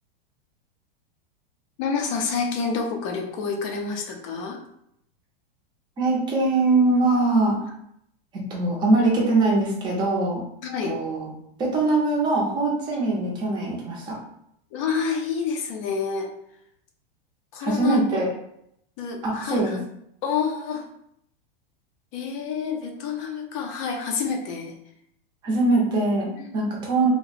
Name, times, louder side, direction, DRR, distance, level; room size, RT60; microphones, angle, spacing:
voice 1, 1.8-4.6 10.6-11.0 14.7-16.3 17.5-18.0 19.0-19.8 20.2-20.9 22.1-24.7 26.3-26.5, left 5 dB, 35° left, 3 dB, 0.5 m, -28 dB
voice 2, 6.0-7.6 8.5-10.4 10.8-11.3 11.6-14.2 17.6-18.3 19.2-19.8 25.4-27.1, right 2 dB, 15° right, -3 dB, 0.6 m, -22 dB
2.8 x 2.1 x 4.1 m, 0.73 s
supercardioid pair, 165°, 30 cm